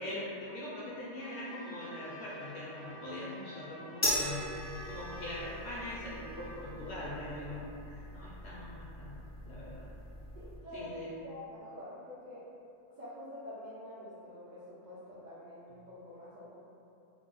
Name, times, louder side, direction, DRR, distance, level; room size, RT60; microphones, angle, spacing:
voice 1, 0.0-4.5 4.8-9.9 10.7-11.1, left 1 dB, 65° left, -7 dB, 0.7 m, -42 dB
Trumpet, 1.2-6.6, left 1 dB, 80° left, 1.0 m, -51 dB
sound 1, 4.0-10.6, left 1 dB, 20° left, 0.4 m, -39 dB
voice 2, 10.3-12.5 13.0-16.5, left 1 dB, 70° right, -10 dB, 0.4 m, -47 dB
2.6 x 2.0 x 3.7 m, 2.6 s
omnidirectional pair, 1.5 m